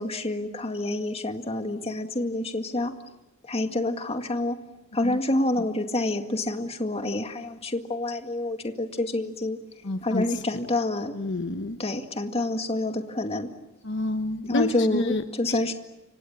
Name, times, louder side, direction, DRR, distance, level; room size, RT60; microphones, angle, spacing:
voice 1, 0.0-2.9 3.4-4.6 4.9-9.6 10.0-11.2 11.8-13.5 14.5-15.7, left 2 dB, 30° left, 6 dB, 2.0 m, -28 dB
voice 2, 9.8-10.4 11.1-11.8 13.8-15.7, left 2 dB, 55° left, 8 dB, 1.1 m, -29 dB
29.0 x 25.5 x 7.3 m, 0.98 s
head